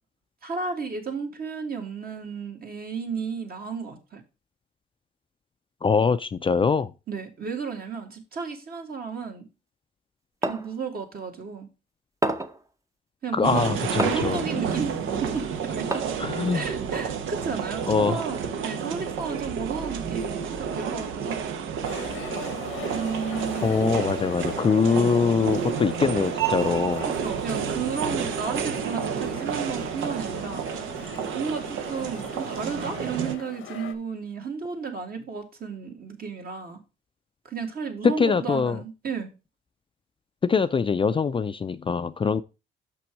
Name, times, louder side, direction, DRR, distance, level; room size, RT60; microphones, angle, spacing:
voice 1, 0.4-4.2 7.1-9.5 10.4-11.7 13.2-13.7 14.0-16.1 16.5-21.5 22.9-24.0 24.8-25.1 27.1-30.6 31.3-36.8 37.5-39.3, right 5 dB, 50° right, 2.0 m, -33 dB
voice 2, 5.8-6.9 13.3-14.4 16.2-16.7 17.9-18.2 23.6-27.1 38.0-38.8 40.4-42.4, left 5 dB, 25° left, 0.4 m, -23 dB
sound 1, 10.4-10.7 12.2-12.6 14.0-14.4 15.9-16.3, right 2 dB, 15° right, 0.7 m, -28 dB
sound 2, 13.4-33.4, right 7 dB, 85° right, 0.9 m, -30 dB
sound 3, 21.8-33.9, left 9 dB, 90° left, 0.9 m, -42 dB
6.2 x 5.9 x 4.5 m
cardioid pair, 90°, 20 cm